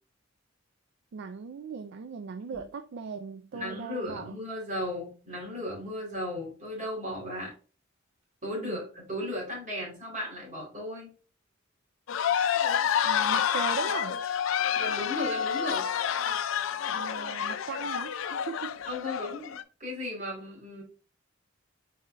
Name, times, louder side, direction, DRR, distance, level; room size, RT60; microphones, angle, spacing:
voice 1, 1.1-4.3 8.6-8.8 13.0-14.2 16.9-18.8, right 5 dB, 60° right, 0.3 m, -38 dB
voice 2, 3.5-7.5 8.4-11.1 14.7-15.9 18.9-20.8, left 1 dB, 40° right, 2.4 m, -36 dB
sound 1, 12.1-19.6, left 8 dB, 70° left, 0.4 m, -29 dB
4.1 x 3.7 x 3.2 m
head